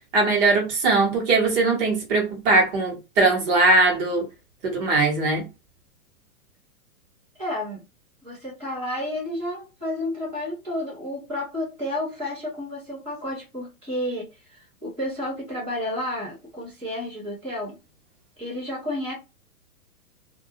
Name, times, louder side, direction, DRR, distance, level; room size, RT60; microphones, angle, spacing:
voice 1, 0.1-4.2 4.6-5.5, right 3 dB, 25° right, 0.9 m, -20 dB
voice 2, 7.4-7.8 8.2-17.8 18.4-19.1, left 1 dB, 5° right, 0.4 m, -31 dB
2.2 x 2.1 x 2.6 m
hypercardioid pair, 150°, 45 cm